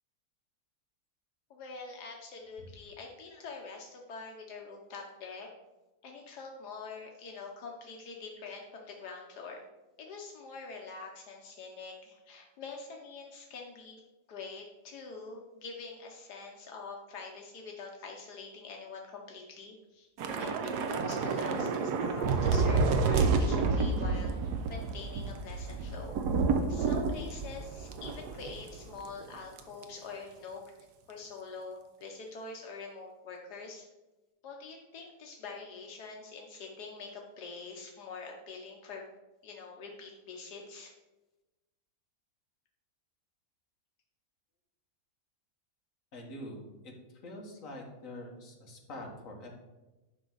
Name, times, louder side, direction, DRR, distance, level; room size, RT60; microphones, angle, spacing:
voice 1, 1.5-5.5 6.0-9.6 10.0-14.0 14.3-24.3 24.7-26.2 26.7-30.6 31.1-33.9 34.4-39.0 39.4-40.9, left 4 dB, 80° left, 0 dB, 1.5 m, -45 dB
Thunder / Rain, 20.2-28.8 29.0-29.2 29.6-29.8, right 4 dB, 85° right, 1.3 m, -29 dB
voice 2, 46.1-46.9 47.2-49.5, left 1 dB, 55° left, 0 dB, 1.9 m, -45 dB
10.5 x 5.9 x 3.9 m, 1.1 s
omnidirectional pair, 1.7 m